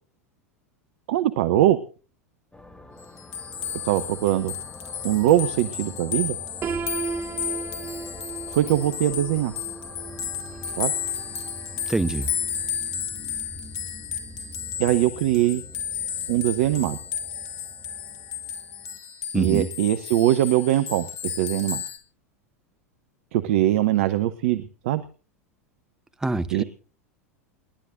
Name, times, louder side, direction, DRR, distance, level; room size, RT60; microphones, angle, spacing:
voice 1, 1.1-1.8 3.8-4.5 5.0-6.4 8.5-9.5 10.8-10.9 14.8-15.6 16.3-17.0 19.3-21.8 23.3-25.0 26.5-26.6, right 13 dB, 55° right, 0.8 m, -22 dB
sound 1, 2.5-19.0, left 2 dB, 10° left, 2.7 m, -45 dB
sound 2, 3.0-22.0, left 8 dB, 50° left, 2.4 m, -33 dB
Piano, 6.6-12.5, right 5 dB, 30° right, 2.1 m, -36 dB
voice 2, 11.9-12.3 19.3-19.7 26.2-26.6, right 2 dB, 10° right, 0.9 m, -25 dB
29.5 x 11.5 x 2.6 m
figure-of-eight pair, 85°, 8 cm